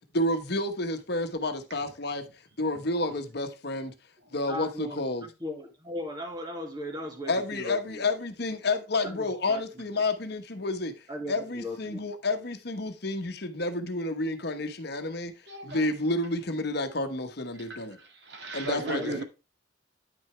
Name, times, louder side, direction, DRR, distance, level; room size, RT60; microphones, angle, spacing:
voice 1, 0.1-2.2 2.6-3.9 4.3-5.3 7.3-10.9 11.3-15.3 15.6-18.0 18.5-19.2, left 2 dB, 55° left, 1.2 m, -30 dB
voice 2, 4.5-8.1 9.0-9.9 11.1-12.0 18.8-19.2, left 1 dB, 20° right, 2.0 m, -38 dB
voice 3, 15.5-15.9 17.6-19.2, right 2 dB, 60° right, 2.0 m, -36 dB
9.6 x 6.3 x 3.2 m
head